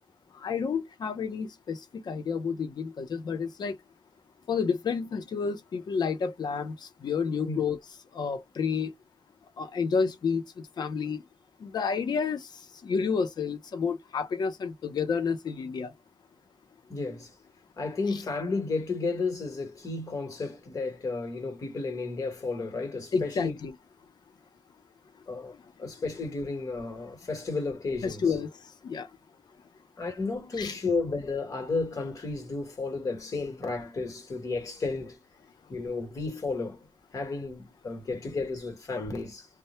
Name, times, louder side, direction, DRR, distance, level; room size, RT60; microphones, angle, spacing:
voice 1, 0.4-1.8 2.1-3.7 4.5-7.8 8.1-8.9 9.6-11.2 11.6-12.5 12.8-15.9 23.1-23.7 28.0-28.5 28.8-29.1 30.6-30.7, left 5 dB, 75° left, 0.6 m, -30 dB
voice 2, 16.9-17.3 17.8-23.6 25.3-28.2 30.0-35.2 35.7-36.8 37.1-39.5, left 3 dB, 50° left, 1.1 m, -33 dB
2.1 x 2.0 x 2.9 m
wide cardioid pair, 130°, 7 cm